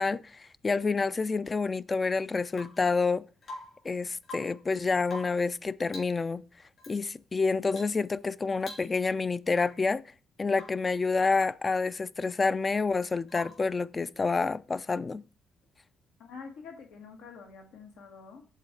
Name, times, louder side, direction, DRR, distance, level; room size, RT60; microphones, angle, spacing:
voice 1, 0.0-3.2 3.8-6.4 6.9-10.0 10.4-15.2, left 4 dB, 30° left, 0.3 m, -28 dB
Rain / Water tap faucet / Drip, 2.5-2.9 3.4-3.9 4.2-4.7 5.0-5.5 5.9-6.2 6.8-7.0 7.7-8.0 8.3-8.4 8.6-9.2 9.5-9.9 10.5-10.9 13.3-13.7 15.6-15.7, left 2 dB, 55° left, 3.4 m, -46 dB
voice 2, 16.2-18.5, left 5 dB, 90° left, 1.3 m, -47 dB
7.5 x 3.8 x 4.4 m
cardioid pair, 90°, 0 cm